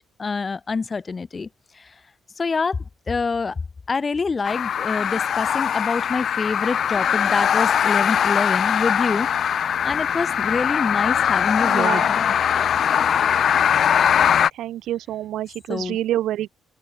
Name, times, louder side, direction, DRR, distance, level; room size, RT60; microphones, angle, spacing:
voice 1, 0.2-1.5 1.7-1.9 2.4-3.6 3.9-9.3 9.8-12.3 15.7-16.0, left 4 dB, 25° left, 3.1 m, -26 dB
sound 1, 4.5-14.5, left 8 dB, 50° left, 0.5 m, -21 dB
voice 2, 11.6-12.1 14.6-16.5, right 13 dB, 75° right, 4.6 m, -27 dB
open air
cardioid pair, 130°, 0 cm